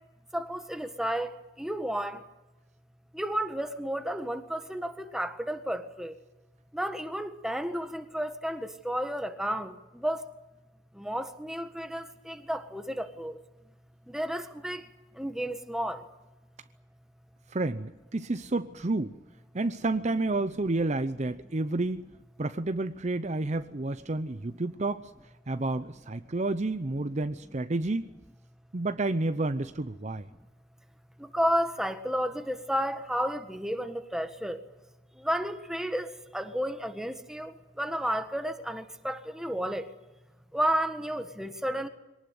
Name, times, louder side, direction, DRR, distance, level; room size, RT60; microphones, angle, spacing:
voice 1, 0.3-1.3 1.6-2.2 3.1-6.1 6.7-10.2 11.0-13.4 14.1-14.8 15.2-16.0 31.3-34.6 35.2-36.1 36.3-37.5 37.8-39.8 40.5-41.9, equal, 5° right, 8 dB, 1.6 m, -32 dB
voice 2, 17.5-19.1 19.5-22.1 22.4-25.1 25.5-28.1 28.7-30.2, right 2 dB, 35° right, 11 dB, 0.7 m, -30 dB
23.0 x 19.0 x 9.4 m, 1.0 s
head